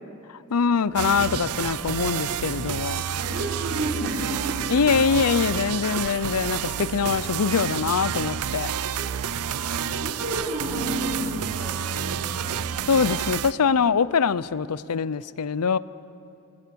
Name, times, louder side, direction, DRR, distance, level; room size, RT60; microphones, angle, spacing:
voice 1, 0.5-3.0 4.7-8.7 12.9-15.8, left 6 dB, 85° left, 0.6 m, -23 dB
sound 1, 0.7-6.2, equal, ahead, 6.6 m, -46 dB
sound 2, 1.0-13.5, right 8 dB, 80° right, 0.5 m, -29 dB
voice 2, 3.1-4.9 9.0-9.1 9.7-12.6, right 1 dB, 55° right, 3.9 m, -32 dB
24.0 x 19.5 x 6.9 m
head